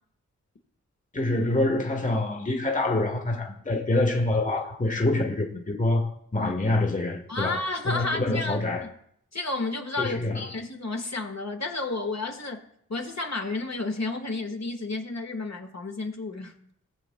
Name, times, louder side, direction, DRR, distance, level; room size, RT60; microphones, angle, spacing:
voice 1, 1.1-7.6 7.9-8.8 10.0-10.4, left 2 dB, 25° left, 1.1 m, -26 dB
voice 2, 7.3-8.9 9.3-12.6 12.9-16.5, left 3 dB, 50° left, 1.5 m, -31 dB
19.0 x 7.0 x 2.2 m
cardioid pair, 55°, 33 cm